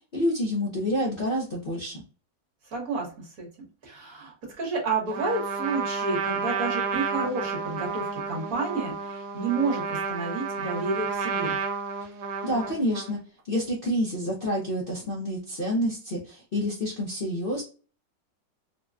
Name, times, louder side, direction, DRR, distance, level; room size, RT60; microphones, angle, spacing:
voice 1, 0.1-2.0 12.4-13.2 13.5-17.6, equal, 55° left, -3 dB, 0.6 m, -28 dB
voice 2, 2.7-3.5 3.8-11.6, right 4 dB, 55° right, -1 dB, 1.3 m, -30 dB
Trumpet, 5.1-13.2, right 5 dB, 80° right, 1.3 m, -31 dB
3.9 x 2.1 x 2.3 m, 0.37 s
omnidirectional pair, 1.9 m